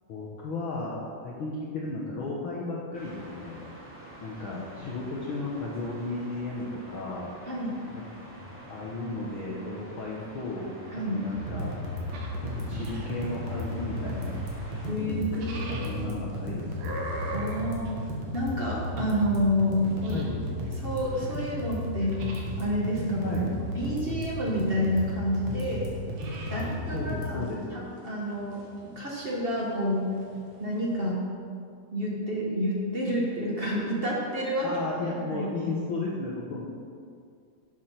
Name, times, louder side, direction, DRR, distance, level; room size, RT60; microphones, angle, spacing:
voice 1, 0.1-3.6 4.2-7.3 8.7-10.7 11.1-11.8 12.4-14.4 14.9-17.0 20.1-20.4 23.2-23.5 26.5-26.6 26.9-27.8 34.6-36.6, left 2 dB, 55° left, -5 dB, 1.7 m, -34 dB
sound 1, 2.9-14.9, right 1 dB, 5° right, 2.3 m, -46 dB
voice 2, 7.5-7.8 10.9-11.2 14.8-15.9 17.3-18.0 18.3-20.2 20.8-22.2 22.6-23.4 23.7-25.9 26.5-28.6 28.8-30.1 30.6-31.2 31.9-34.6 35.3-35.5, equal, 30° right, -3 dB, 1.1 m, -29 dB
sound 2, 11.3-27.3, left 1 dB, 60° right, 2.7 m, -34 dB
sound 3, 12.1-31.1, right 1 dB, 85° right, 3.0 m, -45 dB
11.0 x 7.4 x 5.9 m, 2.3 s
omnidirectional pair, 3.5 m